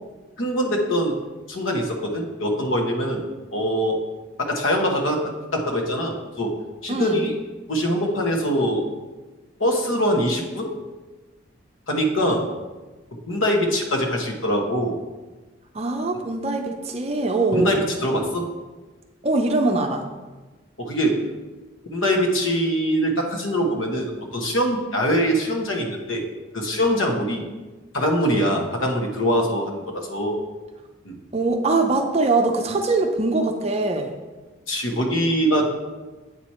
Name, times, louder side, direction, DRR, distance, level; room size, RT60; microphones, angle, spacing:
voice 1, 0.4-1.2 1.5-3.2 3.5-4.0 4.4-5.2 5.5-6.5 6.8-7.3 7.7-8.8 9.6-10.8 11.9-12.5 13.3-15.0 17.5-18.4 20.8-21.2 21.9-26.2 26.5-27.4 27.9-30.4 31.0-31.2 34.7-35.7, equal, 85° left, 2 dB, 1.1 m, -23 dB
voice 2, 6.9-7.3 15.7-17.8 19.2-20.0 31.3-34.1, right 3 dB, 30° right, 4 dB, 0.5 m, -22 dB
8.0 x 4.6 x 4.3 m, 1.2 s
head